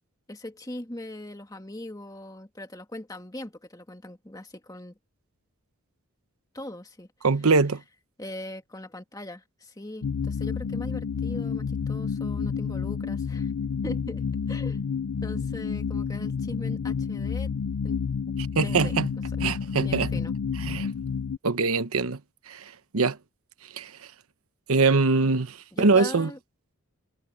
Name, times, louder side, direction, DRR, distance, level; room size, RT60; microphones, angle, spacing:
voice 1, 0.3-4.9 6.5-7.1 8.2-13.5 13.8-14.8 15.2-17.5 17.8-19.0 19.8-20.3 25.7-26.4, left 1 dB, 15° left, 2.1 m, -40 dB
voice 2, 7.2-7.8 18.6-19.1 19.4-20.1 20.6-20.9 21.4-22.2 22.5-23.2 23.7-23.9 24.7-26.3, right 4 dB, 80° right, 1.0 m, -23 dB
sound 1, 10.0-21.4, left 6 dB, 85° left, 0.4 m, -30 dB
head